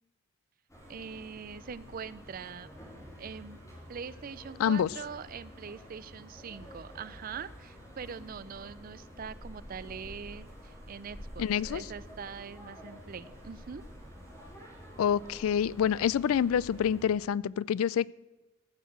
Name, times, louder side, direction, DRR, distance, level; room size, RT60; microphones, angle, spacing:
sound 1, 0.7-17.1, equal, 15° left, 2.7 m, -49 dB
voice 1, 0.9-2.7 3.2-3.6 3.9-13.8, right 6 dB, 40° right, 17 dB, 0.4 m, -43 dB
voice 2, 4.6-4.9 11.4-11.8 15.0-18.1, left 8 dB, 80° left, 23 dB, 0.3 m, -27 dB
14.5 x 6.5 x 7.8 m, 1.1 s
head